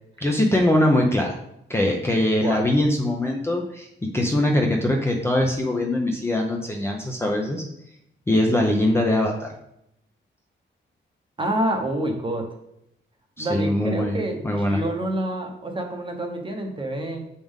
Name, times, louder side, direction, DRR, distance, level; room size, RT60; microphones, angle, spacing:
voice 1, 0.2-1.4 1.7-3.9 4.1-7.6 8.3-9.5 13.4-14.2 14.4-14.8, left 1 dB, 10° left, 0 dB, 0.6 m, -22 dB
voice 2, 11.4-12.5 13.4-17.2, right 1 dB, 25° right, 3 dB, 0.9 m, -27 dB
7.5 x 5.4 x 3.6 m, 0.78 s
wide cardioid pair, 180°, 21 cm